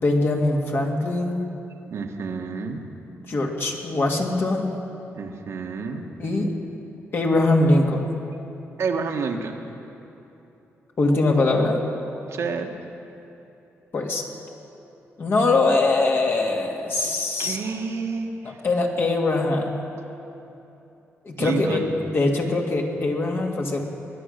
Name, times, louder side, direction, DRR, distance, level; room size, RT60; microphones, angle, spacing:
voice 1, 0.0-1.4 3.3-4.7 6.2-6.5 7.1-8.1 11.0-11.8 13.9-14.2 15.2-17.6 18.4-19.7 21.2-23.8, left 2 dB, 50° left, 1 dB, 2.1 m, -22 dB
voice 2, 1.9-2.9 5.1-6.1 8.8-9.6 12.3-12.7 17.4-18.6 21.4-21.9, right 5 dB, 70° right, 3 dB, 1.3 m, -29 dB
21.5 x 10.0 x 6.6 m, 2.9 s
cardioid pair, 100°, 5 cm